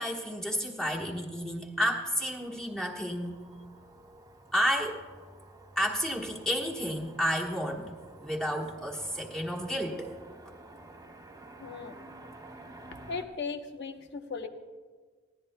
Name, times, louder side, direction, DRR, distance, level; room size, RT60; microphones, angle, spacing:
voice 1, 0.0-3.4 4.5-5.1 5.8-7.8 8.2-10.1, equal, 5° left, -2 dB, 1.3 m, -31 dB
Motor vehicle (road), 1.3-13.2, right 2 dB, 20° right, 1.0 m, -51 dB
voice 2, 11.6-12.0 13.1-14.5, left 4 dB, 60° left, 6 dB, 0.9 m, -37 dB
20.0 x 15.5 x 2.2 m, 1.5 s
head